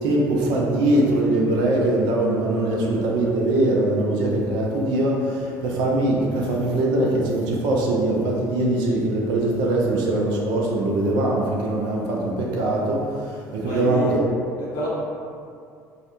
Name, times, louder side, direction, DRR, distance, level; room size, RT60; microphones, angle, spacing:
voice 1, 0.0-14.3, right 1 dB, 50° right, -2 dB, 0.5 m, -22 dB
voice 2, 13.6-14.9, left 1 dB, 50° left, -7 dB, 0.8 m, -29 dB
2.4 x 2.1 x 2.8 m, 2.3 s
figure-of-eight pair, 60°, 9 cm